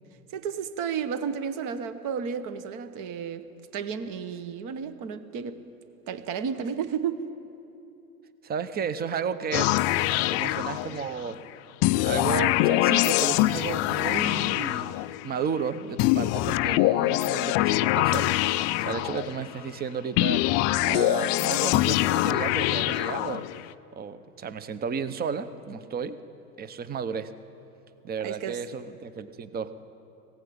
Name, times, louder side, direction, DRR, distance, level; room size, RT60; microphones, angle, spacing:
voice 1, 0.3-3.5 3.7-5.6 6.1-7.3 28.2-28.6, right 7 dB, 40° right, 11 dB, 1.4 m, -32 dB
voice 2, 8.4-9.8 10.3-11.4 12.0-15.0 15.2-23.4 24.0-26.2 26.6-27.3 28.0-29.7, right 6 dB, 20° right, 13 dB, 0.8 m, -33 dB
sound 1, 9.5-11.3 11.8-15.4 16.0-19.6 20.2-23.7, left 17 dB, 35° left, 0.4 m, -24 dB
19.0 x 17.0 x 8.7 m, 2.9 s
hypercardioid pair, 115°, 47 cm